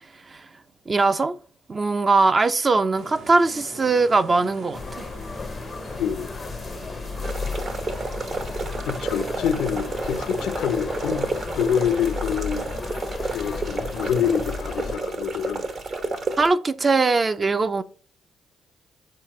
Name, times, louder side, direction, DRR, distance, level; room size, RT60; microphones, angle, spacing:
voice 1, 0.9-1.3 1.7-5.1 16.4-17.8, right 3 dB, 30° right, 0.5 m, -21 dB
sound 1, 3.0-12.8, right 2 dB, 80° right, 2.4 m, -42 dB
sound 2, 4.7-15.0, left 4 dB, 35° left, 0.5 m, -34 dB
voice 2, 6.0-6.4 8.9-11.3 11.5-12.6 13.3-15.7, left 9 dB, 85° left, 0.7 m, -26 dB
sound 3, 7.2-16.5, right 3 dB, 50° right, 1.1 m, -31 dB
7.6 x 4.1 x 3.0 m
cardioid pair, 90°, 0 cm